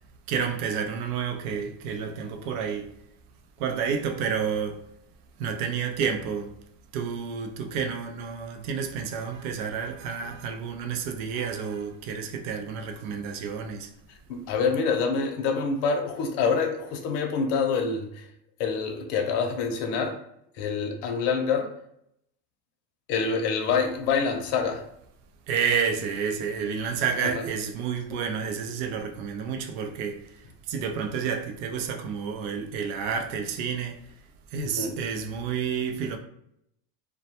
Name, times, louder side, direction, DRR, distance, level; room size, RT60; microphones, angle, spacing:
voice 1, 0.3-2.9 3.6-4.8 5.4-6.6 6.9-13.9 25.5-34.1 34.5-36.2, right 6 dB, 60° right, 0.5 m, -30 dB
voice 2, 14.3-18.3 18.6-20.2 20.6-21.7 23.1-24.8 34.6-34.9, left 5 dB, 70° left, 0.7 m, -26 dB
2.2 x 2.1 x 2.8 m
supercardioid pair, 135°, 47 cm